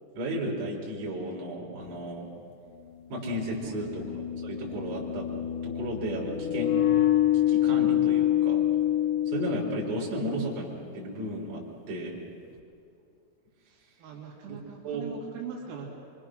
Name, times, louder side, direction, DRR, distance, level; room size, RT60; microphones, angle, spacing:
voice 1, 0.1-2.3 3.1-4.0 4.4-5.3 5.6-6.7 7.5-8.6 9.3-10.7 10.9-12.2 14.5-14.6 14.8-15.0, right 1 dB, 55° right, -4 dB, 6.0 m, -33 dB
sound 1, 1.9-2.0 3.4-10.3, left 12 dB, 75° left, 2.8 m, -26 dB
voice 2, 3.6-4.1 10.2-10.5 14.0-15.9, right 7 dB, 80° right, -3 dB, 5.1 m, -42 dB
26.0 x 25.0 x 6.4 m, 2.5 s
omnidirectional pair, 6.0 m